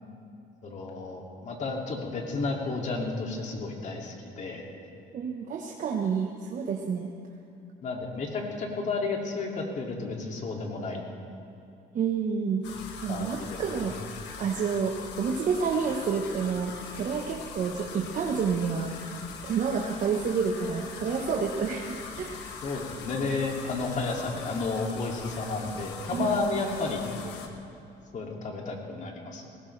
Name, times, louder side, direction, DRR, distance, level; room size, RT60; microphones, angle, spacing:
voice 1, 0.6-4.6 7.8-11.0 13.1-13.6 22.6-27.4 28.1-29.5, left 3 dB, 45° left, 0 dB, 2.6 m, -32 dB
voice 2, 5.1-7.1 11.9-12.6 13.0-13.9 14.4-19.2 19.4-22.5 26.1-26.3, right 6 dB, 50° right, 1 dB, 1.2 m, -29 dB
sound 1, 12.6-27.5, left 5 dB, 90° left, 1.4 m, -42 dB
19.0 x 17.5 x 3.3 m, 2.9 s
cardioid pair, 110°, 17 cm